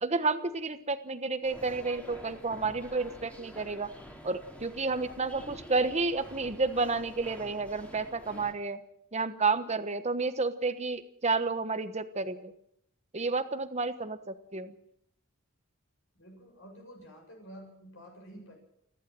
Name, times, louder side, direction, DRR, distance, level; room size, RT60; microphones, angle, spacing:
voice 1, 0.0-3.9 4.2-8.8 9.1-12.5 13.1-14.7, right 3 dB, 30° right, 10 dB, 1.2 m, -31 dB
sound 1, 1.4-8.5, equal, 5° left, 3.0 m, -48 dB
voice 2, 16.2-18.5, equal, 65° left, 1 dB, 7.1 m, -50 dB
29.0 x 11.5 x 7.8 m, 0.74 s
head